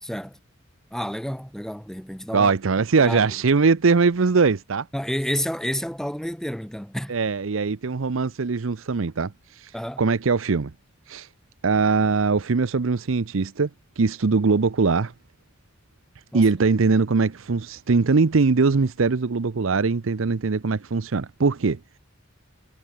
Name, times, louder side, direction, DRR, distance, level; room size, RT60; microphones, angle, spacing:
voice 1, 0.0-0.4 0.9-2.5 3.0-3.2 4.9-7.1 9.7-10.0 16.3-16.4, equal, 5° left, 2.7 m, -30 dB
voice 2, 2.3-4.9 7.1-9.7 10.0-10.7 11.1-11.3 11.6-13.7 14.0-15.1 16.3-21.8, right 4 dB, 70° right, 0.7 m, -21 dB
head